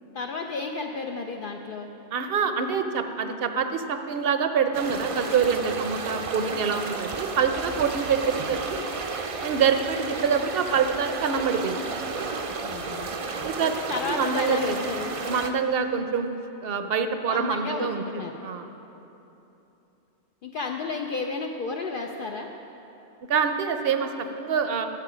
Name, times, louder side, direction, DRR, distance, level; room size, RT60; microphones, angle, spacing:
voice 1, 0.1-1.9 12.6-13.1 13.6-15.2 17.3-18.4 20.4-22.5, left 4 dB, 60° left, 2 dB, 0.7 m, -32 dB
voice 2, 2.1-8.9 9.4-11.8 13.4-14.8 15.3-16.3 16.6-18.0 18.4-18.7 23.3-24.9, right 6 dB, 60° right, 7 dB, 0.8 m, -26 dB
sound 1, 4.7-15.5, right 4 dB, 45° right, 0.5 m, -33 dB
12.0 x 7.7 x 5.0 m, 3.0 s
omnidirectional pair, 1.1 m